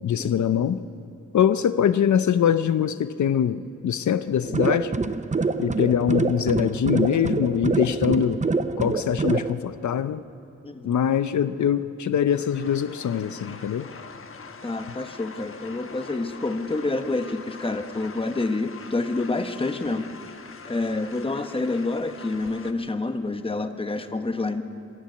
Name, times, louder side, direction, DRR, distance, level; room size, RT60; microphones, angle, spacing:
voice 1, 0.0-0.8 1.3-4.9 5.6-8.4 8.8-10.2 10.8-13.9, left 8 dB, 75° left, 12 dB, 0.6 m, -23 dB
sound 1, 4.4-9.5, right 4 dB, 25° right, 0.6 m, -26 dB
sound 2, 12.3-22.7, left 4 dB, 45° left, 1.1 m, -43 dB
voice 2, 14.6-20.1 20.6-24.6, left 2 dB, 20° left, 8 dB, 1.0 m, -28 dB
26.0 x 10.5 x 9.6 m, 2.7 s
wide cardioid pair, 120°, 29 cm